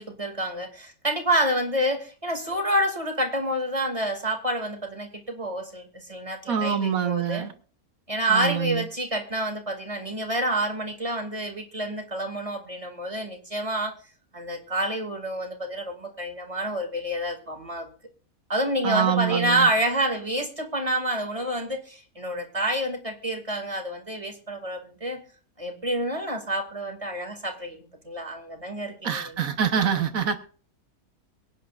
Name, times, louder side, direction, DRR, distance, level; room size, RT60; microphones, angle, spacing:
voice 1, 0.0-7.5 8.1-13.9 14.3-17.9 18.5-25.2 25.6-27.8 28.0-29.5, right 1 dB, 20° right, 5 dB, 2.3 m, -28 dB
voice 2, 6.5-7.5 8.3-8.8 18.8-19.7 29.0-30.4, right 8 dB, 70° right, 9 dB, 1.5 m, -25 dB
23.5 x 10.0 x 2.5 m, 0.40 s
omnidirectional pair, 1.5 m